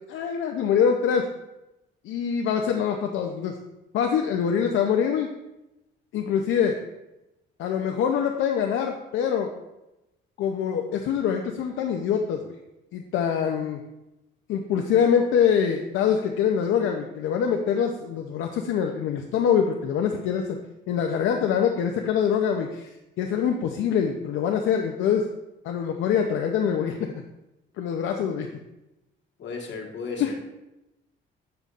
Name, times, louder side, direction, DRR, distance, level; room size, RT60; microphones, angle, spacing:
voice 1, 0.1-1.3 2.0-3.5 3.9-5.3 6.1-6.8 7.6-9.5 10.4-12.6 12.9-13.8 14.5-20.4 20.9-22.9 23.2-25.3 25.6-26.9 27.8-28.5 30.2-30.3, left 7 dB, 85° left, 3 dB, 0.6 m, -24 dB
voice 2, 29.4-30.3, left 4 dB, 65° left, 0 dB, 1.5 m, -34 dB
7.8 x 6.7 x 2.5 m, 0.95 s
cardioid pair, 90°, 20 cm